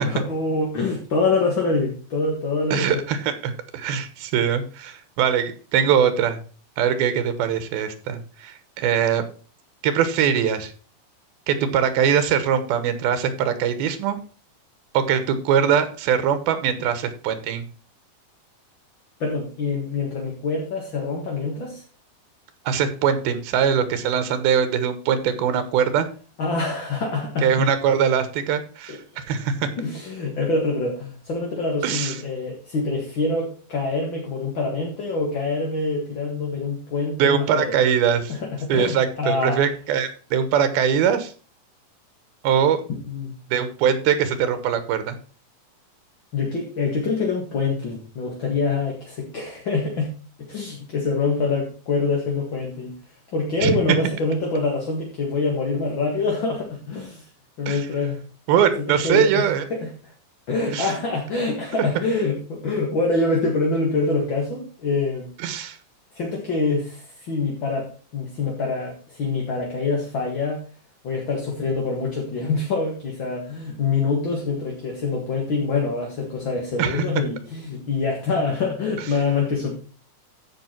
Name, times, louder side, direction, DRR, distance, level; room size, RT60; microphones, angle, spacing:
voice 1, 0.0-2.9 19.2-21.8 26.4-27.7 28.9-29.2 29.8-37.8 38.3-39.6 43.1-43.3 46.3-50.1 50.5-53.0 53.3-57.3 57.6-58.2 58.8-60.1 60.5-65.3 66.1-70.6 71.0-79.7, left 3 dB, 45° left, -1 dB, 1.9 m, -25 dB
voice 2, 2.7-6.4 6.8-9.3 9.8-10.7 11.5-14.2 14.9-17.6 22.7-26.1 27.4-29.7 31.8-32.2 37.2-38.3 38.7-41.3 42.4-42.8 43.5-45.2 53.6-54.0 57.7-57.9 58.5-59.6 60.7-60.9 65.4-65.8 76.8-77.0, right 8 dB, 90° right, 11 dB, 3.1 m, -22 dB
14.0 x 5.6 x 4.5 m, 0.38 s
omnidirectional pair, 4.2 m